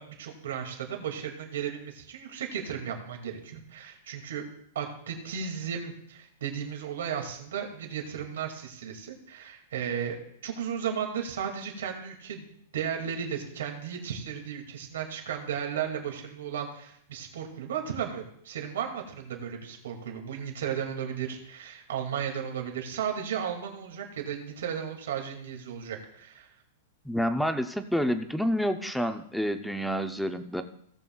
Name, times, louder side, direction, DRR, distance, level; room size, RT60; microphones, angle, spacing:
voice 1, 0.0-4.4 4.7-10.2 10.4-26.5, right 8 dB, 85° right, 2 dB, 2.2 m, -35 dB
voice 2, 27.0-30.6, equal, ahead, 9 dB, 0.5 m, -28 dB
17.5 x 7.6 x 2.3 m, 0.68 s
supercardioid pair, 170°, 0 cm